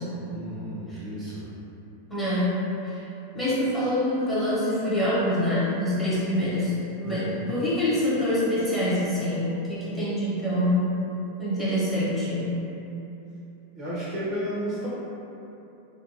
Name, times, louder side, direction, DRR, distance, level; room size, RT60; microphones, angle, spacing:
voice 1, 0.1-1.5 7.0-7.5 13.7-14.9, equal, 30° right, -8 dB, 0.5 m, -33 dB
voice 2, 2.1-2.6 2.8-3.0 3.3-10.9 11.4-12.6, left 1 dB, 5° left, -11 dB, 0.9 m, -25 dB
2.6 x 2.2 x 2.6 m, 2.9 s
figure-of-eight pair, 90°, 0 cm